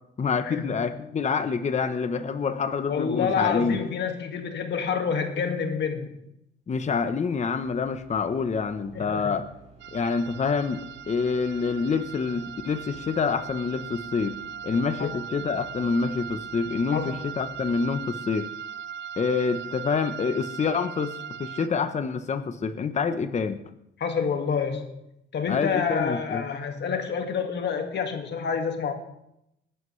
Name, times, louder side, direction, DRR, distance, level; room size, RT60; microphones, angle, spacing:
voice 1, 0.2-3.8 6.7-9.4 9.9-14.4 14.6-18.5 19.2-23.6 25.5-26.4, left 5 dB, 35° left, 10 dB, 0.9 m, -27 dB
voice 2, 2.8-6.1 8.9-9.3 15.0-15.1 16.9-17.1 24.0-25.0 25.3-28.9, left 6 dB, 60° left, 5 dB, 1.9 m, -28 dB
sound 1, 7.6-18.0, right 4 dB, 35° right, 6.1 m, -52 dB
sound 2, 9.8-21.7, right 8 dB, 60° right, 0.6 m, -39 dB
20.0 x 11.5 x 3.2 m, 0.83 s
cardioid pair, 90°, 20 cm